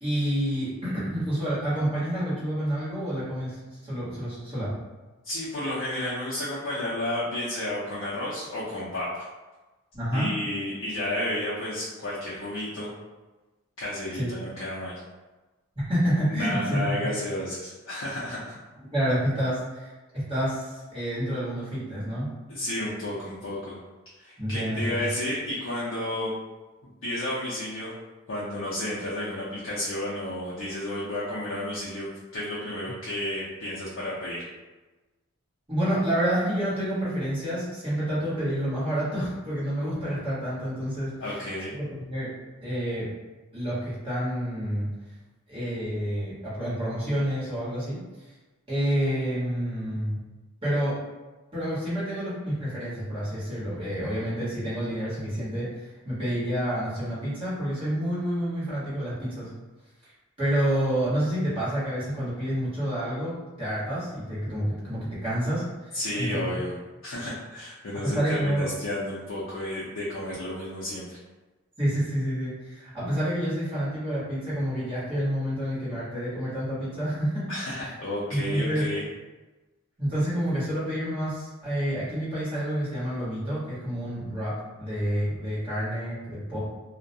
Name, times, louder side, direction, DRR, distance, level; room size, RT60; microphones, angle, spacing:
voice 1, 0.0-4.7 9.9-10.3 14.1-14.3 15.8-17.1 18.9-22.3 24.4-25.1 35.7-41.1 42.0-42.3 42.6-43.1 43.5-44.9 45.5-48.0 48.7-50.2 50.6-51.0 51.5-59.5 60.0-60.1 60.4-66.5 68.0-68.7 71.8-77.5 77.8-77.9 78.3-78.9 80.0-86.6, equal, 25° right, -10 dB, 1.0 m, -28 dB
voice 2, 5.2-9.3 10.1-12.9 13.8-15.0 16.3-18.6 22.5-23.8 24.2-26.3 26.8-27.9 28.3-34.4 41.2-41.7 65.9-66.7 67.0-71.1 77.5-79.0, left 1 dB, 70° left, -9 dB, 0.5 m, -32 dB
2.3 x 2.1 x 2.6 m, 1.2 s
head